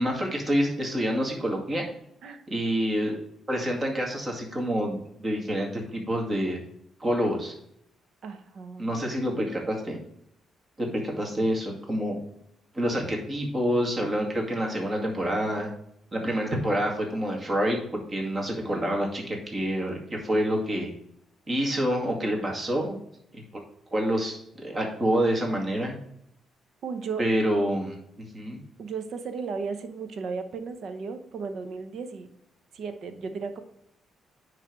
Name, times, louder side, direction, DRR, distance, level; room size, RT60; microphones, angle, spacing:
voice 1, 0.0-1.8 2.5-3.2 3.5-6.6 7.0-7.5 8.8-10.0 10.8-12.2 12.7-15.7 16.1-20.9 21.5-23.0 23.3-23.4 23.9-26.0 27.2-28.6, equal, 30° right, 0 dB, 2.1 m, -27 dB
voice 2, 8.2-8.9 26.8-27.2 28.8-32.3 32.7-33.6, right 5 dB, 65° right, 9 dB, 0.9 m, -35 dB
9.8 x 3.4 x 4.6 m, 0.73 s
cardioid pair, 90°, 0 cm